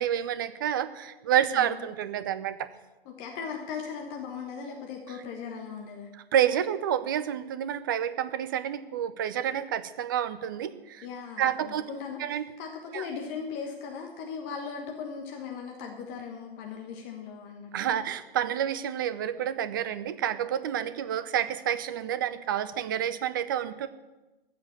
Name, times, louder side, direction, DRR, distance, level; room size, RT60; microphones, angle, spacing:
voice 1, 0.0-2.7 5.1-5.2 6.1-11.1 11.4-11.9 12.2-12.5 12.9-13.1 17.7-23.9, right 10 dB, 20° right, 13 dB, 0.5 m, -29 dB
voice 2, 3.0-6.1 11.0-12.2 12.6-18.0, left 6 dB, 20° left, 2 dB, 1.4 m, -38 dB
14.5 x 7.2 x 8.0 m, 1.1 s
figure-of-eight pair, 130°, 30 cm